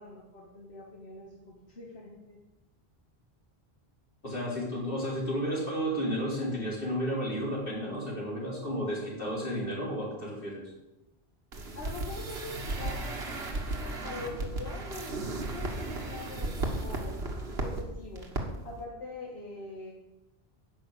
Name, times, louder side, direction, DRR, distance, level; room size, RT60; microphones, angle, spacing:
voice 1, 0.0-2.4 11.7-17.2 17.6-18.3 18.6-19.9, left 2 dB, 80° left, -2 dB, 1.7 m, -43 dB
voice 2, 4.2-10.7, equal, 60° left, -4 dB, 3.7 m, -32 dB
sound 1, 11.5-17.8 18.1-18.4 18.7-18.8, right 2 dB, 75° right, 1.7 m, -35 dB
10.5 x 5.9 x 8.4 m, 0.98 s
omnidirectional pair, 1.1 m